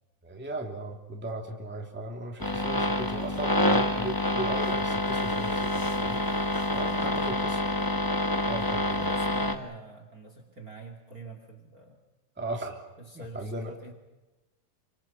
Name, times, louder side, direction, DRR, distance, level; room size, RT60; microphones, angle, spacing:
voice 1, 0.2-7.6 8.5-9.1 12.4-12.8 13.1-13.7, right 2 dB, 5° right, 1 dB, 2.6 m, -37 dB
sound 1, 2.4-9.5, left 1 dB, 25° left, 0.4 m, -27 dB
voice 2, 6.7-7.2 8.9-12.0 13.0-13.9, right 1 dB, 30° right, 4 dB, 2.7 m, -45 dB
29.0 x 26.0 x 5.9 m, 1.1 s
omnidirectional pair, 3.6 m